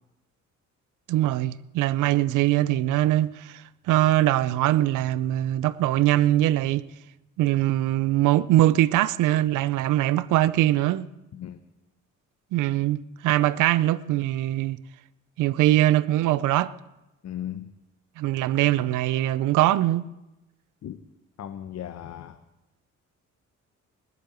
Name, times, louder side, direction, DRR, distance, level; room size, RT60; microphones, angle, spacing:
voice 1, 1.1-6.9 7.4-11.1 12.5-14.8 15.4-16.7 18.2-20.0, right 14 dB, 90° right, 0.6 m, -22 dB
voice 2, 17.2-17.7 20.8-21.0 21.4-22.4, left 11 dB, 60° left, 1.0 m, -36 dB
20.0 x 8.1 x 9.0 m
cardioid pair, 90°, 30 cm